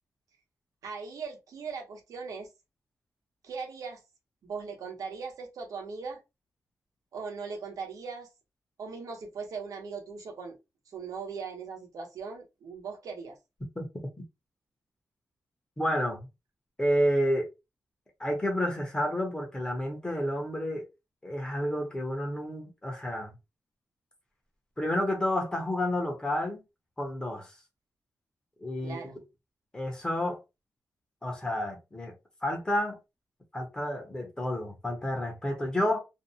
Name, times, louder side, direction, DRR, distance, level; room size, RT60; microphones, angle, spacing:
voice 1, 0.8-2.5 3.4-4.0 4.4-6.2 7.1-8.3 8.8-10.6 10.9-13.4 28.8-29.2, right 5 dB, 90° right, 0.9 m, -39 dB
voice 2, 15.8-16.3 16.8-17.5 18.2-20.9 21.2-23.3 24.8-26.6 27.0-27.6 28.6-29.1 29.7-30.4 31.2-32.1 32.4-33.0 33.5-36.0, equal, 15° left, 0.8 m, -30 dB
2.6 x 2.1 x 2.7 m
wide cardioid pair, 175°, 6 cm